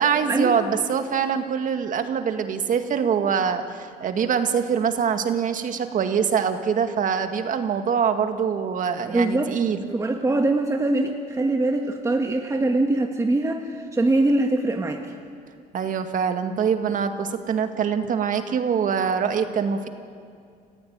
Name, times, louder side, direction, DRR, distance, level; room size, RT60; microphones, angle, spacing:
voice 1, 0.0-9.8 15.7-19.9, right 7 dB, 50° right, 7 dB, 2.0 m, -24 dB
voice 2, 9.1-9.5 9.9-15.0, right 2 dB, 20° right, 3 dB, 1.6 m, -22 dB
28.5 x 15.5 x 9.6 m, 2.3 s
cardioid pair, 110°, 17 cm